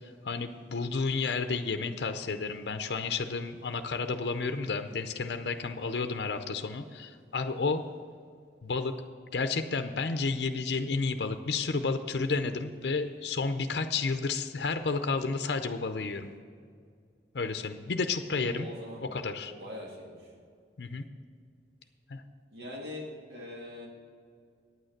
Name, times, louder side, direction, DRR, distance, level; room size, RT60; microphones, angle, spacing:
voice 1, 0.2-7.8 8.6-9.0 9.3-16.3 17.3-18.7 19.1-19.5 20.8-21.0 22.1-22.2, left 4 dB, 65° left, 7 dB, 0.6 m, -31 dB
voice 2, 18.4-19.1 19.4-20.3 22.5-23.9, left 1 dB, 65° right, -3 dB, 2.2 m, -42 dB
9.2 x 8.9 x 6.5 m, 2.2 s
head